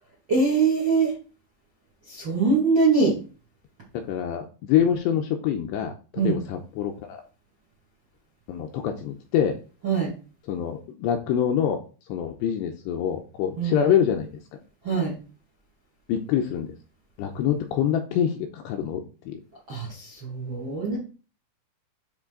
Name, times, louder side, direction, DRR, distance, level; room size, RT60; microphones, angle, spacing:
voice 1, 0.3-1.1 2.0-3.1 6.1-6.4 9.8-10.1 13.6-13.8 14.8-15.2 19.7-21.0, right 4 dB, 50° right, -4 dB, 1.4 m, -23 dB
voice 2, 4.1-5.9 6.2-7.2 8.5-9.5 10.5-11.8 12.1-14.3 16.1-16.7 17.2-19.4, left 9 dB, 85° left, 4 dB, 2.6 m, -25 dB
9.9 x 3.8 x 3.7 m, 0.36 s
omnidirectional pair, 5.5 m